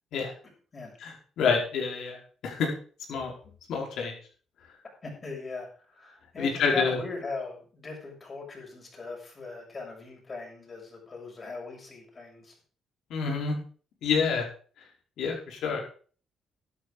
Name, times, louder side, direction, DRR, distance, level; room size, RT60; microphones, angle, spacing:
voice 1, 1.0-2.2 2.4-2.7 3.1-3.3 3.7-4.1 6.4-7.0 13.1-13.6 14.0-14.5 15.2-15.8, left 5 dB, 75° left, 1 dB, 4.7 m, -27 dB
voice 2, 5.0-12.5, left 3 dB, 35° left, 0 dB, 6.9 m, -39 dB
12.0 x 9.2 x 5.1 m, 0.42 s
cardioid pair, 90°, 0 cm